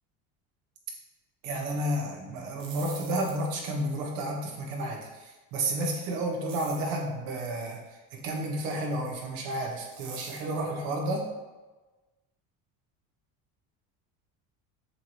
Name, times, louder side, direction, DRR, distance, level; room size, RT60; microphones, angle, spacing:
voice 1, 1.4-7.8 8.1-11.2, right 1 dB, 85° right, 0 dB, 1.8 m, -31 dB
sound 1, 2.4-3.7 6.5-7.0 9.9-10.6, right 5 dB, 70° right, 1.6 m, -45 dB
7.3 x 3.6 x 4.7 m, 1.2 s
cardioid pair, 120°, 40 cm